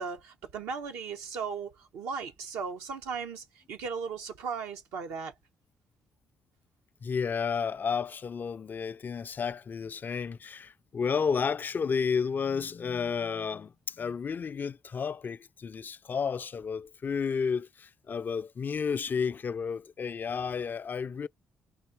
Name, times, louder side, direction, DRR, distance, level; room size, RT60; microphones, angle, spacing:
voice 1, 0.0-5.3, right 5 dB, 80° right, 0.8 m, -37 dB
voice 2, 7.0-21.3, left 6 dB, 45° left, 0.3 m, -32 dB
4.0 x 2.8 x 4.5 m
hypercardioid pair, 55°, 5 cm